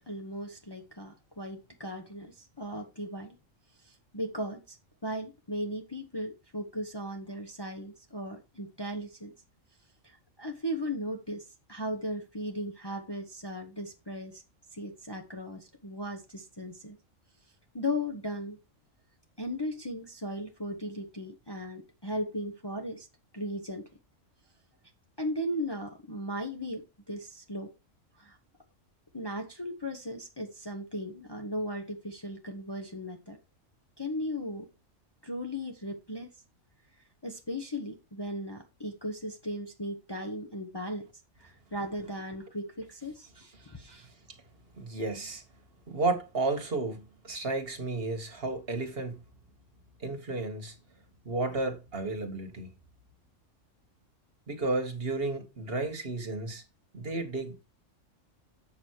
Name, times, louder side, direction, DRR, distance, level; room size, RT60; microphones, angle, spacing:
voice 1, 0.1-3.4 3.8-4.8 5.0-9.3 10.0-14.4 14.7-17.0 17.7-18.6 19.4-23.1 23.3-23.9 25.2-27.7 28.2-28.4 29.1-33.4 34.0-34.7 35.2-36.3 37.2-41.1 41.4-44.1, equal, 20° left, 1.1 m, -37 dB
voice 2, 44.8-45.4 45.9-49.2 50.0-50.8 51.3-52.7 54.5-56.6 56.9-57.6, right 3 dB, 50° right, 1.9 m, -32 dB
8.3 x 6.2 x 4.7 m
omnidirectional pair, 1.3 m